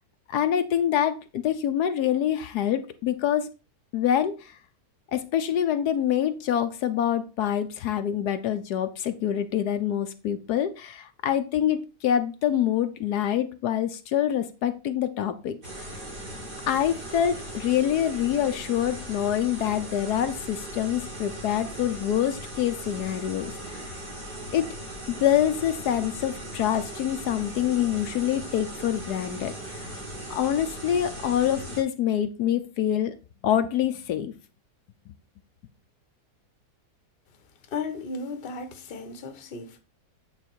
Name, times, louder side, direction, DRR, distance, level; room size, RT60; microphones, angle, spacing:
voice 1, 0.3-3.5 3.9-4.6 5.1-15.9 16.7-23.9 24.5-24.7 25.1-29.9 30.3-33.2 33.4-34.3, left 10 dB, 80° left, 1.2 m, -26 dB
sound 1, 15.6-31.8, right 1 dB, 80° right, 4.4 m, -38 dB
voice 2, 37.7-39.8, left 4 dB, 40° left, 1.0 m, -35 dB
8.6 x 4.0 x 4.5 m
omnidirectional pair, 1.7 m